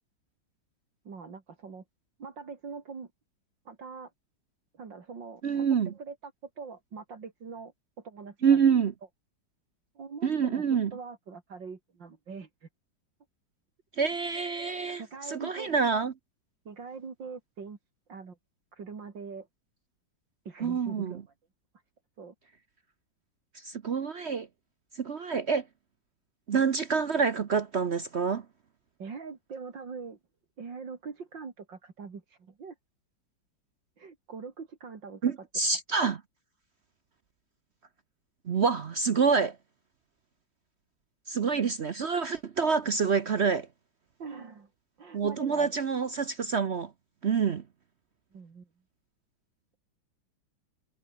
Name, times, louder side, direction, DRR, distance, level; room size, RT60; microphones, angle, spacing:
voice 1, 1.1-1.8 2.2-3.1 3.7-4.1 4.7-5.7 5.9-8.6 10.0-12.7 15.0-15.7 16.7-17.8 18.1-18.4 18.7-19.5 20.5-21.2 22.2-22.4 29.0-30.2 30.6-32.8 34.0-35.4 44.2-44.7 45.0-45.7 48.3-48.7, right 5 dB, 70° right, 3.4 m, -43 dB
voice 2, 5.4-5.9 8.4-8.9 10.2-10.9 14.0-15.0 15.3-16.1 20.6-21.2 23.6-24.5 25.0-25.6 26.5-28.4 35.2-36.2 38.5-39.6 41.3-43.7 45.1-46.9 47.2-47.6, right 6 dB, 50° right, 0.8 m, -27 dB
omnidirectional pair, 2.1 m